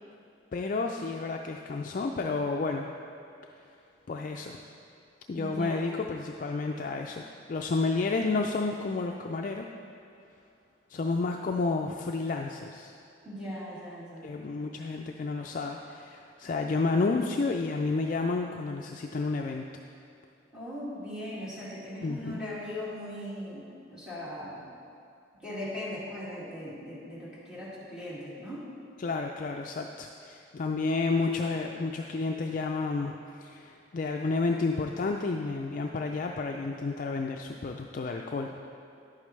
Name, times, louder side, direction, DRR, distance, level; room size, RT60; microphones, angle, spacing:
voice 1, 0.5-2.9 4.1-4.6 5.3-7.2 7.5-9.7 10.9-12.9 14.2-19.7 22.0-22.4 29.0-38.7, left 3 dB, 45° left, 2 dB, 0.4 m, -31 dB
voice 2, 5.3-6.0 13.2-14.3 20.5-24.6 25.4-28.6, left 1 dB, 5° right, -9 dB, 2.3 m, -39 dB
11.0 x 8.6 x 3.2 m, 2.5 s
head